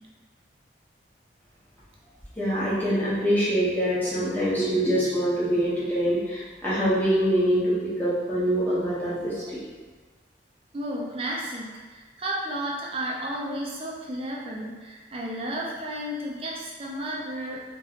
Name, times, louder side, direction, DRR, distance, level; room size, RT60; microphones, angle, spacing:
voice 1, 2.4-9.4, equal, 10° left, -10 dB, 0.9 m, -24 dB
voice 2, 10.7-17.6, right 1 dB, 30° right, -3 dB, 0.5 m, -33 dB
3.0 x 2.9 x 2.7 m, 1.4 s
head